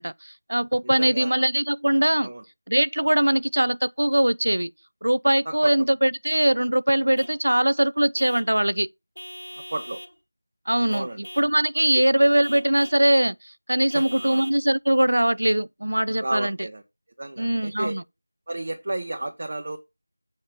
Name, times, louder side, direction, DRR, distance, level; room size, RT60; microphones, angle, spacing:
voice 1, 0.0-2.3 2.7-4.7 5.0-8.9 10.7-16.6 17.4-18.0, right 1 dB, 65° right, 0.5 m, -21 dB
voice 2, 0.8-1.4 2.2-2.4 5.4-5.7 9.5-10.0 10.9-11.3 11.9-12.0 13.9-14.4 16.2-16.8 17.2-17.9 18.5-19.8, right 2 dB, 40° right, 0.9 m, -32 dB
Vehicle horn car horn honking / Truck, 7.2-7.4 8.2-8.6 9.2-10.2 10.9-11.6 12.4-13.0 13.9-14.6, equal, 75° left, 1.0 m, -41 dB
8.0 x 4.3 x 5.4 m
figure-of-eight pair, 170°, 0 cm